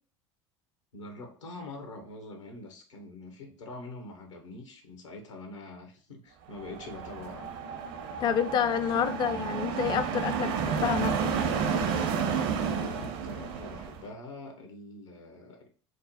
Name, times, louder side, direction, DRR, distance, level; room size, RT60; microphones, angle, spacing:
voice 1, 0.9-7.5 12.7-15.7, left 2 dB, 75° left, 0.9 m, -44 dB
sound 1, 6.6-14.0, right 6 dB, 55° right, 0.6 m, -31 dB
voice 2, 8.2-11.2, left 8 dB, 30° left, 0.3 m, -28 dB
4.8 x 2.0 x 2.8 m
figure-of-eight pair, 70°, 16 cm